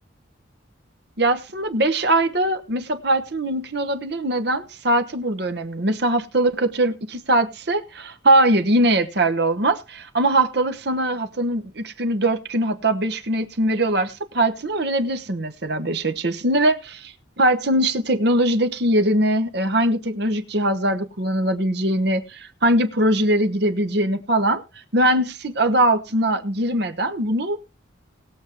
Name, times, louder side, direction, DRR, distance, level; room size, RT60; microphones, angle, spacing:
voice 1, 1.2-24.6 24.9-27.6, right 1 dB, 60° right, 1.1 m, -21 dB
20.0 x 7.2 x 3.0 m
head